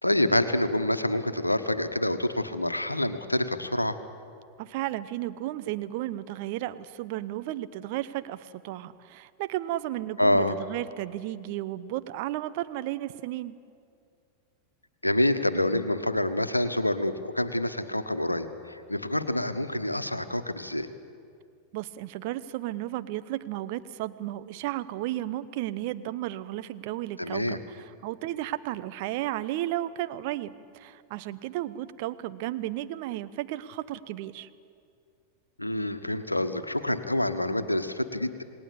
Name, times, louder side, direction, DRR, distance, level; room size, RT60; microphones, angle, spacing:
voice 1, 0.0-4.0 10.2-10.5 15.0-20.9 27.2-27.6 35.6-38.4, left 1 dB, 85° left, 10 dB, 1.3 m, -27 dB
voice 2, 4.6-13.6 21.7-34.5, right 14 dB, 50° right, 13 dB, 0.9 m, -34 dB
28.0 x 19.0 x 8.5 m, 2.3 s
figure-of-eight pair, 90°, 0 cm